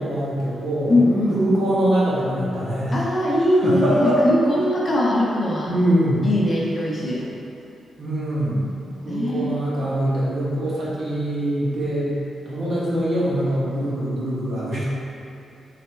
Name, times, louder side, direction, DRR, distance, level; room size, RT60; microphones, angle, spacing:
voice 1, 0.0-1.0 1.3-3.0 3.6-4.2 5.6-6.3 8.0-12.1 12.4-14.8, right 1 dB, 50° right, -8 dB, 1.1 m, -23 dB
voice 2, 0.9-1.4 2.9-5.7 6.2-7.3 9.1-9.6, left 1 dB, 35° left, -4 dB, 0.6 m, -21 dB
4.0 x 3.2 x 3.2 m, 2.7 s
cardioid pair, 130°, 0 cm